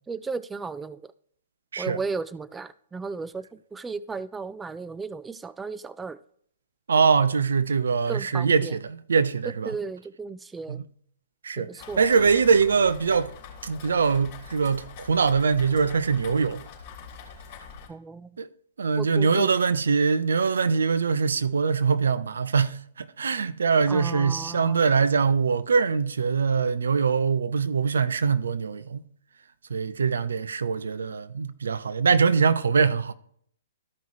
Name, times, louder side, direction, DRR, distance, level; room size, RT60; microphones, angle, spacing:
voice 1, 0.1-1.1 1.8-6.2 8.1-8.8 9.7-10.8 11.6-12.1 17.9-18.4 19.0-19.5 23.9-24.8, right 4 dB, 10° right, 0.3 m, -35 dB
voice 2, 6.9-8.8 9.1-9.7 10.7-10.8 11.4-11.7 12.0-13.3 13.6-16.6 18.4-18.5 18.8-29.0 29.7-33.1, right 5 dB, 75° right, 0.6 m, -23 dB
Rain, 11.8-17.9, left 6 dB, 35° left, 3.1 m, -44 dB
13.5 x 5.4 x 3.1 m
figure-of-eight pair, 120°, 0 cm